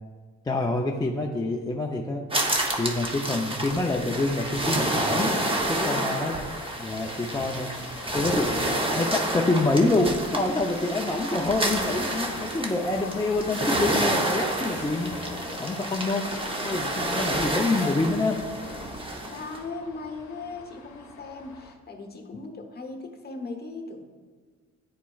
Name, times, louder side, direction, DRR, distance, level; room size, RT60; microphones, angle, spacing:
voice 1, 0.5-2.2 2.7-5.3 5.7-6.3 6.8-7.7 8.1-8.5 8.9-15.1 15.6-16.2 16.6-18.4 22.3-22.4, left 2 dB, 15° left, -1 dB, 0.4 m, -26 dB
sound 1, 2.3-19.6, right 1 dB, 15° right, 0.8 m, -29 dB
sound 2, 4.2-21.8, left 4 dB, 65° left, 0.9 m, -44 dB
voice 2, 5.7-6.1 17.5-18.0 19.2-24.0, left 3 dB, 35° left, 4 dB, 0.9 m, -38 dB
sound 3, 7.4-8.8 9.0-9.2 9.7-11.3 11.6-16.4, right 2 dB, 40° right, 1.1 m, -48 dB
10.5 x 4.2 x 2.3 m, 1.5 s
cardioid pair, 90°, 30 cm